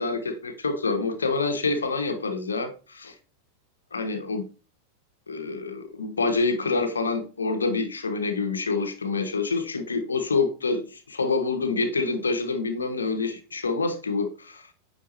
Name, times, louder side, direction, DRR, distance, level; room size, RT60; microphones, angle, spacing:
voice 1, 0.0-3.1 3.9-4.4 5.3-14.6, left 4 dB, 75° left, 0.7 m, -27 dB
9.1 x 3.5 x 3.0 m
figure-of-eight pair, 90°, 0 cm